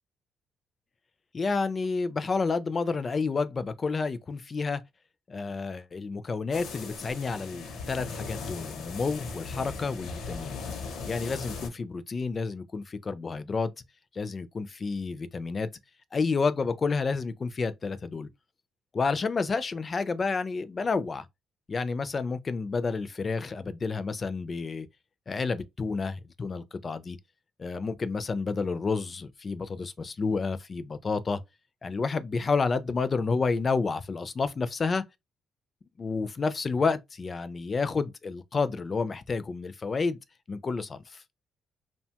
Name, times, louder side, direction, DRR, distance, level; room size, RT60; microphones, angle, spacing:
voice 1, 1.3-4.8 5.3-10.6 11.1-13.7 14.1-15.7 16.1-18.3 18.9-21.3 21.7-24.9 25.3-27.2 27.6-31.4 31.8-35.0 36.0-40.2 40.5-41.2, left 4 dB, 35° left, 0.3 m, -30 dB
sound 1, 6.5-11.7, left 4 dB, 80° left, 0.7 m, -38 dB
2.6 x 2.2 x 2.8 m
cardioid pair, 90°, 0 cm